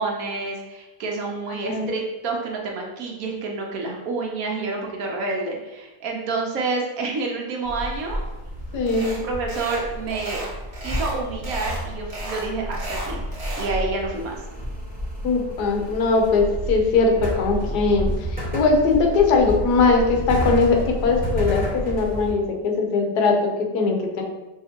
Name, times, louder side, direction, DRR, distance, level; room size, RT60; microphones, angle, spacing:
voice 1, 0.0-8.2 9.0-10.4 10.8-13.2 13.6-14.4, right 3 dB, 65° right, 0 dB, 1.1 m, -28 dB
voice 2, 1.5-1.9 8.7-9.1 15.2-24.2, left 4 dB, 75° left, 2 dB, 1.3 m, -20 dB
sound 1, 7.7-22.3, equal, 5° right, 1.1 m, -30 dB
sound 2, 8.9-9.2 9.5-9.8 10.1-11.2 11.4-11.8 12.1-13.7, right 1 dB, 25° right, 0.9 m, -34 dB
5.9 x 2.8 x 2.8 m, 1.0 s
omnidirectional pair, 1.8 m